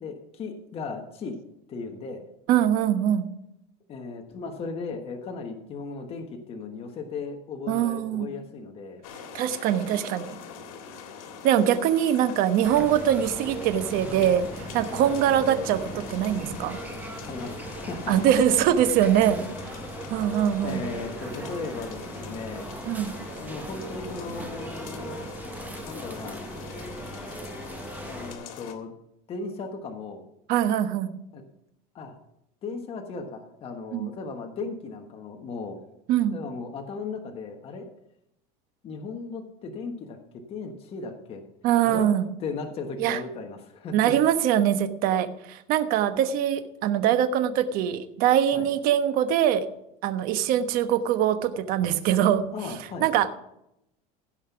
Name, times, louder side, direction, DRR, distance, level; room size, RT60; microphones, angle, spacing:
voice 1, 0.0-1.4 1.7-2.2 3.9-9.0 14.9-15.1 17.2-18.4 20.6-22.7 23.4-25.3 25.8-26.4 28.0-28.9 29.3-30.2 31.3-31.4 31.9-32.1 32.6-35.8 36.3-37.9 38.8-41.4 41.8-42.1 42.4-44.2 48.5-48.7 52.5-53.1, left 4 dB, 35° left, 4 dB, 1.3 m, -36 dB
voice 2, 2.5-3.3 7.7-8.3 9.3-10.4 11.4-16.8 18.1-19.7 20.1-20.8 22.9-23.1 30.5-31.1 33.9-34.1 36.1-36.4 41.6-42.2 43.0-43.2 43.9-49.6 50.0-52.4 53.0-53.3, right 10 dB, 55° right, 10 dB, 1.1 m, -23 dB
sound 1, 9.0-28.7, left 6 dB, 90° left, 2.0 m, -42 dB
sound 2, 12.6-28.3, right 2 dB, 10° right, 1.2 m, -38 dB
16.0 x 5.7 x 5.8 m, 0.79 s
supercardioid pair, 140°, 18 cm